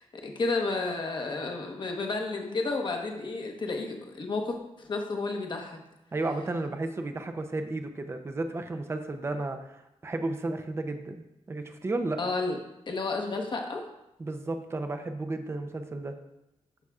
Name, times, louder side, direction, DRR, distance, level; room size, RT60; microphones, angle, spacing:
voice 1, 0.0-5.8 12.2-12.6 12.9-13.8, left 3 dB, 40° left, 2 dB, 1.1 m, -31 dB
voice 2, 6.1-11.2 11.5-12.2 14.2-16.1, right 2 dB, 20° right, 6 dB, 0.6 m, -33 dB
12.5 x 5.7 x 2.4 m, 0.89 s
wide cardioid pair, 160°, 12 cm